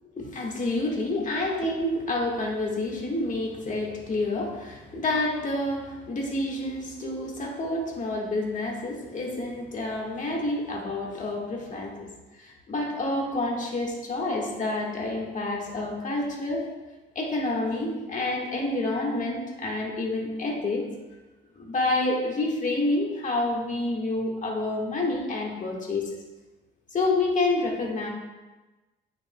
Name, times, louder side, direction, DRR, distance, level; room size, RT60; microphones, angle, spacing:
voice 1, 0.2-12.1 12.4-16.7 17.2-20.9 21.6-26.1 26.9-28.1, left 2 dB, 40° left, -1 dB, 1.8 m, -28 dB
9.0 x 6.8 x 2.3 m, 1.1 s
cardioid pair, 90°, 20 cm